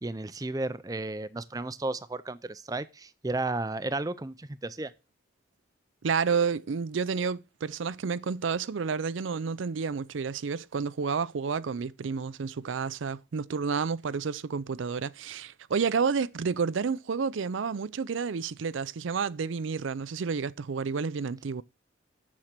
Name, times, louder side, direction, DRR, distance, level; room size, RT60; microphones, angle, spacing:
voice 1, 0.0-4.9, right 2 dB, 20° right, 0.5 m, -33 dB
voice 2, 6.0-21.6, right 5 dB, 85° right, 0.5 m, -30 dB
7.4 x 7.2 x 6.6 m
head